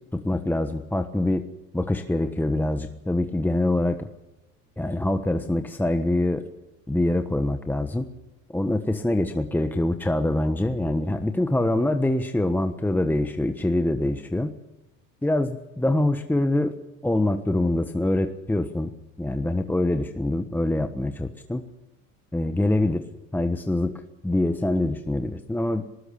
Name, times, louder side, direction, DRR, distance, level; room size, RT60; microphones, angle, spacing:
voice 1, 0.1-1.4 1.7-4.1 4.8-6.5 6.9-8.1 8.5-14.5 15.2-16.7 17.0-18.9 19.2-21.6 22.3-23.1 23.3-23.9 24.2-25.9, left 1 dB, 5° left, 7 dB, 1.3 m, -24 dB
19.5 x 19.5 x 8.5 m, 0.93 s
supercardioid pair, 105°, 37 cm